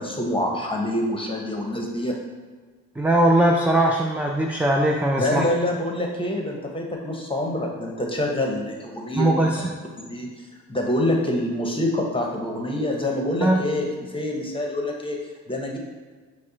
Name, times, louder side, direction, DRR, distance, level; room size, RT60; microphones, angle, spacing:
voice 1, 0.0-2.2 5.2-9.7 10.0-10.3 10.7-15.2 15.5-15.8, left 1 dB, 15° left, 0 dB, 0.9 m, -26 dB
voice 2, 3.0-5.4 9.2-9.6 13.4-13.6, right 1 dB, 5° right, 1 dB, 0.3 m, -20 dB
5.2 x 2.2 x 3.9 m, 1.4 s
cardioid pair, 65°, 33 cm